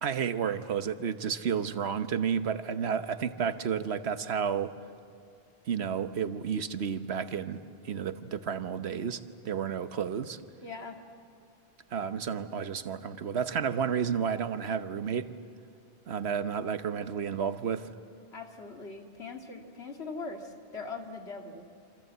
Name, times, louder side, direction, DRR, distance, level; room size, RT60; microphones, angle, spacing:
voice 1, 0.0-4.7 5.7-10.4 11.9-15.3 16.1-17.9, right 7 dB, 85° right, 11 dB, 1.2 m, -31 dB
voice 2, 10.6-11.0 18.3-21.6, left 4 dB, 90° left, 3 dB, 2.5 m, -41 dB
27.0 x 27.0 x 8.0 m, 2.5 s
omnidirectional pair, 1.1 m